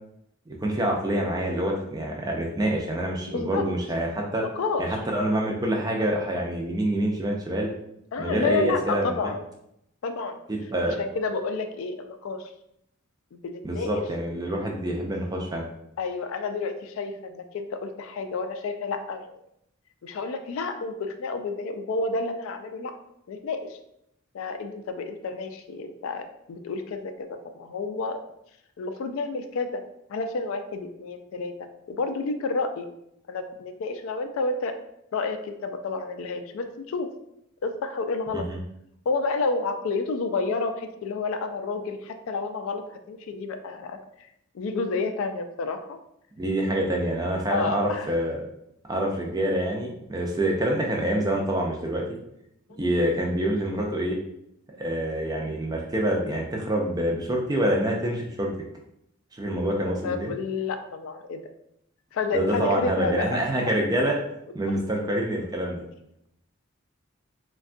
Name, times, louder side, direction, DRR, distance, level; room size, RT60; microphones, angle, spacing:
voice 1, 0.5-4.4 4.8-7.7 8.2-9.1 10.5-11.0 13.6-15.7 38.3-38.6 46.4-48.4 48.9-52.0 52.8-54.2 54.8-58.5 59.3-60.4 62.3-64.2 64.5-65.9, right 1 dB, 20° right, 0 dB, 0.3 m, -26 dB
voice 2, 3.3-3.6 4.4-4.9 8.1-9.4 10.0-10.4 11.0-12.5 13.3-14.0 16.0-19.4 20.0-22.9 23.3-23.8 24.3-28.2 28.8-29.8 30.1-31.5 31.9-32.9 33.3-34.8 35.1-37.1 37.6-38.5 39.1-44.0 44.5-46.0 46.8-47.0 47.5-48.1 52.7-52.8 59.5-59.7 60.0-61.4 62.1-63.4 65.0-65.1, left 3 dB, 70° left, 7 dB, 0.3 m, -30 dB
3.5 x 2.2 x 2.4 m, 0.78 s
head